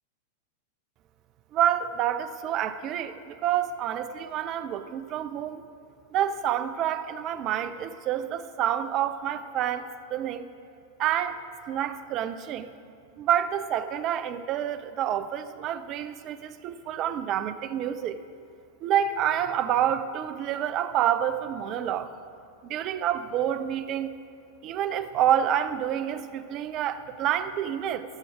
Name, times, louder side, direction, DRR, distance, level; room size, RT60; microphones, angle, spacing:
voice 1, 1.5-5.6 6.1-10.5 11.0-11.4 11.7-12.7 13.2-18.2 18.8-22.1 22.6-24.1 24.6-28.0, right 10 dB, 35° right, 12 dB, 0.6 m, -28 dB
19.0 x 7.6 x 4.9 m, 2.5 s
figure-of-eight pair, 90°, 0 cm